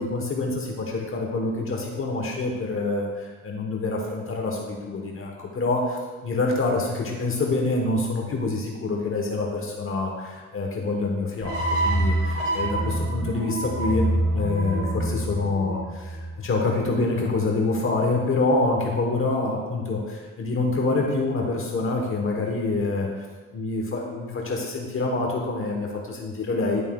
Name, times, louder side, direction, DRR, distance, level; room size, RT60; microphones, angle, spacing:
voice 1, 0.0-23.3 23.5-26.8, left 3 dB, 45° left, 0 dB, 1.1 m, -26 dB
sound 1, 11.4-16.6, right 1 dB, 50° right, 2.3 m, -26 dB
11.0 x 6.7 x 2.3 m, 1.4 s
cardioid pair, 90°, 30 cm